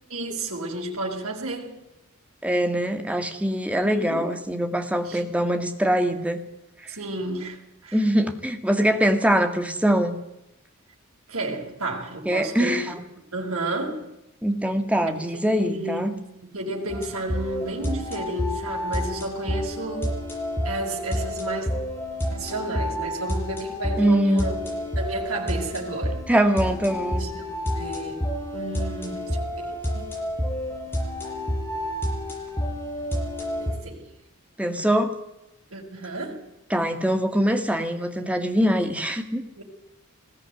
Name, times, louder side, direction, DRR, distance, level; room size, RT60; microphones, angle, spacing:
voice 1, 0.1-1.8 3.8-4.3 5.0-5.2 6.9-8.0 11.3-12.9 13.3-14.1 15.1-20.2 20.6-21.7 22.3-24.7 25.0-26.2 27.2-30.2 33.6-34.0 35.7-36.5 39.6-39.7, right 2 dB, 75° right, 5.9 m, -32 dB
voice 2, 2.4-6.4 6.8-6.9 7.9-10.2 12.3-13.0 14.4-16.1 24.0-24.5 26.3-27.2 34.6-35.1 36.7-39.4, equal, 5° right, 2.1 m, -23 dB
sound 1, 16.9-33.7, equal, 10° left, 6.2 m, -29 dB
21.0 x 16.0 x 9.5 m
head